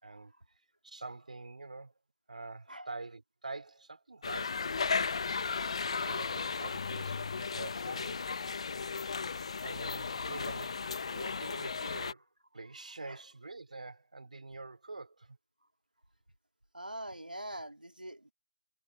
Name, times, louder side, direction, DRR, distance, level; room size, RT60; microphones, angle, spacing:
voice 1, 0.0-0.3 0.8-1.9 2.3-4.9 5.8-8.2 9.6-12.2 12.5-15.4, right 3 dB, 55° right, 4.5 m, -46 dB
sound 1, 4.2-12.1, left 5 dB, 40° left, 1.4 m, -35 dB
voice 2, 12.6-13.2 16.7-18.3, right 1 dB, 80° right, 3.1 m, -45 dB
figure-of-eight pair, 155°, 5 cm